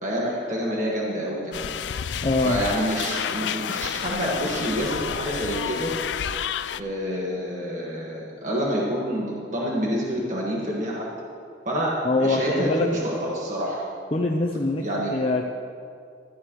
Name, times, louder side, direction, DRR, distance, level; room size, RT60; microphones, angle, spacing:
voice 1, 0.0-1.7 2.4-5.9 6.8-11.1 11.6-11.9 12.2-13.8 14.8-15.1, equal, 40° right, -4 dB, 1.7 m, -27 dB
sound 1, 1.5-6.8, left 8 dB, 70° left, 0.4 m, -30 dB
voice 2, 2.2-2.6 12.0-12.9 14.1-14.8 15.1-15.4, left 2 dB, 30° left, 0 dB, 0.6 m, -23 dB
16.0 x 13.5 x 3.1 m, 2.3 s
head